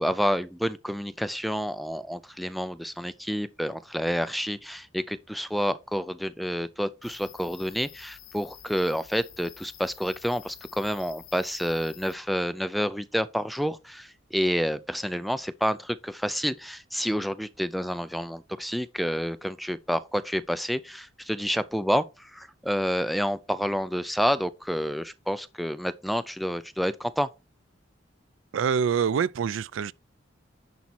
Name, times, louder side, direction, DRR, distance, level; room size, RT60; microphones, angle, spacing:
voice 1, 0.0-27.3, equal, ahead, 0.4 m, -29 dB
sound 1, 7.0-12.1, left 12 dB, 85° left, 1.0 m, -49 dB
voice 2, 28.5-29.9, right 7 dB, 75° right, 0.4 m, -25 dB
10.5 x 4.1 x 4.2 m
head